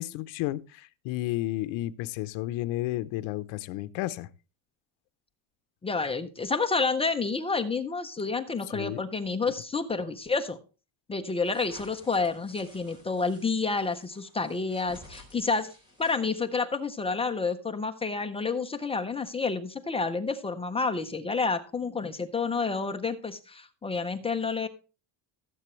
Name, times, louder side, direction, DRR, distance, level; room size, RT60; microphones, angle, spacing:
voice 1, 0.0-4.3 8.7-9.0, left 16 dB, 70° left, 0.9 m, -32 dB
voice 2, 5.8-10.6 11.1-15.7 16.0-24.7, left 4 dB, 15° left, 0.4 m, -29 dB
sound 1, 11.4-16.5, left 1 dB, 10° right, 3.8 m, -53 dB
15.5 x 7.8 x 3.1 m
cardioid pair, 175°, 48 cm